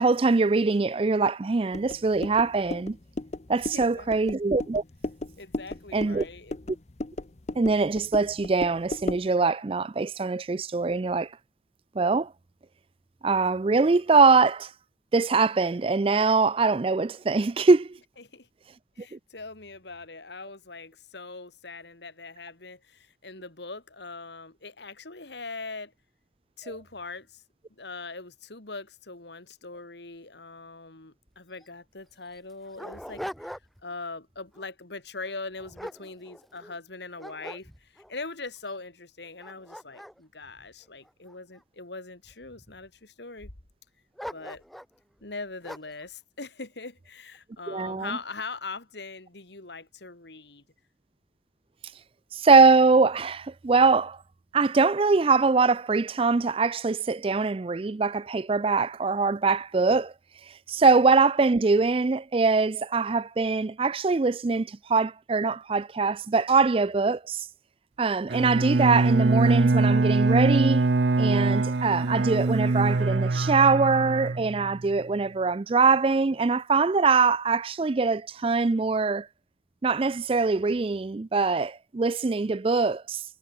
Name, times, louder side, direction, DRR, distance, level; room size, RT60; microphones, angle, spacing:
voice 1, 0.0-3.0 3.5-4.8 5.9-6.2 7.6-11.3 12.0-12.3 13.2-14.7 15.1-18.0 19.1-19.2 47.7-48.2 52.3-54.2 54.5-60.1 60.7-67.5 68.0-70.9 71.2-79.3 79.8-83.2, right 4 dB, 30° right, 0.4 m, -23 dB
sound 1, 1.7-9.3, left 2 dB, 35° left, 0.8 m, -36 dB
voice 2, 3.7-4.1 5.4-6.5 18.2-18.5 19.0-25.9 26.6-27.4 27.8-43.5 44.3-44.6 45.2-50.6, left 3 dB, 65° left, 2.3 m, -41 dB
Dog, 31.3-31.4 31.6-31.7 32.3-33.9 34.4-34.7 35.3-36.8 37.2-38.1 38.7-38.8 39.3-41.6 42.2-42.9 44.2-45.0 45.6-46.0, equal, ahead, 2.5 m, -42 dB
Bowed string instrument, 68.3-74.9, right 3 dB, 65° right, 0.7 m, -23 dB
head